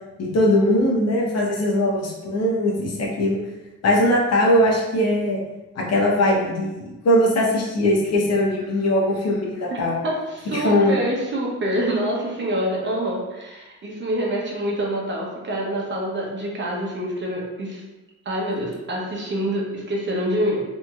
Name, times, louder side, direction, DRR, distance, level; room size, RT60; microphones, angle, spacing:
voice 1, 0.2-3.4 3.8-5.4 5.8-6.8 7.0-10.0 10.5-11.0, left 1 dB, 55° left, -2 dB, 0.8 m, -20 dB
voice 2, 9.7-17.8 18.2-20.6, right 1 dB, 40° right, -2 dB, 0.8 m, -26 dB
2.8 x 2.7 x 2.3 m, 1.1 s
cardioid pair, 90°, 30 cm